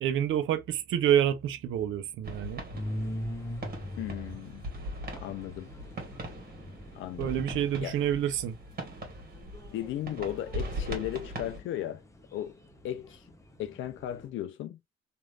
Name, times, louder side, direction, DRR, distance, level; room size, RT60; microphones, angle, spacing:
voice 1, 0.0-2.6 7.2-8.6, right 10 dB, 70° right, 0.6 m, -28 dB
sound 1, 2.2-11.6, right 1 dB, 45° right, 1.4 m, -40 dB
sound 2, 2.7-14.3, equal, 15° left, 0.8 m, -43 dB
voice 2, 4.0-4.6 5.2-5.7 6.9-7.3 7.8-8.0 9.7-12.0 12.3-12.6 12.8-13.2 13.6-15.0, left 12 dB, 70° left, 0.4 m, -36 dB
3.0 x 2.6 x 2.3 m
supercardioid pair, 65°, 21 cm